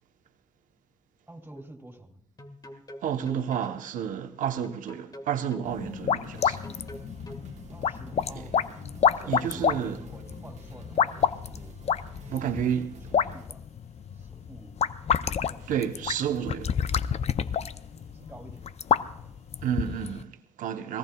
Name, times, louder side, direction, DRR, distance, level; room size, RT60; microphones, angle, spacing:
voice 1, 1.3-2.2 7.7-11.8 12.2-12.8 13.3-13.6 14.1-14.8 15.3-15.7 17.9-18.7 19.1-19.5, right 1 dB, 15° right, 2.8 m, -48 dB
sound 1, 1.6-1.7 2.4-3.8 4.6-5.7 6.4-7.5, left 1 dB, 30° left, 1.7 m, -45 dB
voice 2, 3.0-6.6 8.3-8.4 9.3-10.0 12.3-12.9 15.7-16.8 19.6-21.0, right 9 dB, 85° right, 1.0 m, -30 dB
sound 2, 5.7-20.2, left 7 dB, 55° left, 0.5 m, -29 dB
sound 3, 6.3-13.5, right 4 dB, 65° right, 1.4 m, -50 dB
25.5 x 18.0 x 2.3 m
cardioid pair, 60°, 13 cm